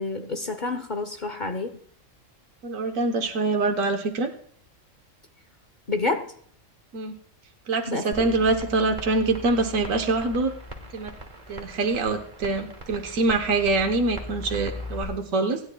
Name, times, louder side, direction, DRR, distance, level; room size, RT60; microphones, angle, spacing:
voice 1, 0.0-1.8 5.9-6.3 7.9-8.4, left 3 dB, 40° left, 7 dB, 1.0 m, -29 dB
voice 2, 2.6-4.3 6.9-7.2 7.7-10.5 10.9-11.1 11.5-15.6, right 3 dB, 80° right, 4 dB, 1.4 m, -24 dB
sound 1, 8.1-15.0, left 1 dB, 35° right, 1.6 m, -39 dB
26.0 x 10.5 x 2.3 m, 0.62 s
omnidirectional pair, 1.4 m